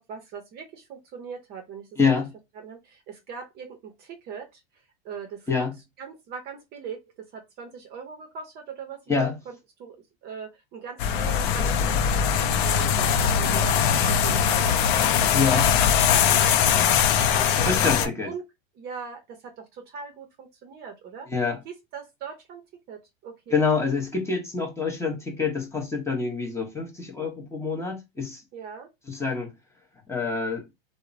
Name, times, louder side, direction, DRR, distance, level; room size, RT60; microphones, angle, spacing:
voice 1, 0.0-1.9 2.6-5.6 6.0-13.7 14.1-15.1 15.4-15.5 16.1-18.5 18.8-21.3 21.6-22.6 22.9-23.6 28.5-28.9, right 6 dB, 35° right, 0.6 m, -40 dB
voice 2, 2.0-2.3 5.5-5.8 9.1-9.3 15.3-15.7 17.6-18.3 21.3-21.6 23.5-28.4 29.1-29.5 30.1-30.6, left 4 dB, 10° left, 0.7 m, -26 dB
sound 1, 11.0-18.1, left 8 dB, 60° left, 0.5 m, -21 dB
2.8 x 2.0 x 2.4 m
supercardioid pair, 125°, 30 cm